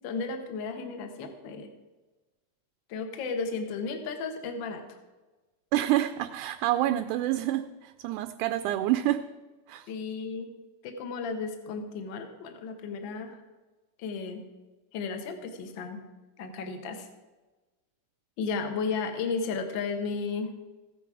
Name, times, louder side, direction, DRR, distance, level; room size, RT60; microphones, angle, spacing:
voice 1, 0.0-1.7 2.9-5.0 9.9-10.5 10.8-13.4 14.0-14.4 14.9-16.0 16.4-17.1 18.4-20.5, left 4 dB, 55° left, 6 dB, 1.4 m, -34 dB
voice 2, 5.7-9.2 9.7-9.9, right 14 dB, 80° right, 9 dB, 2.0 m, -27 dB
15.0 x 10.0 x 4.8 m, 1.2 s
omnidirectional pair, 3.7 m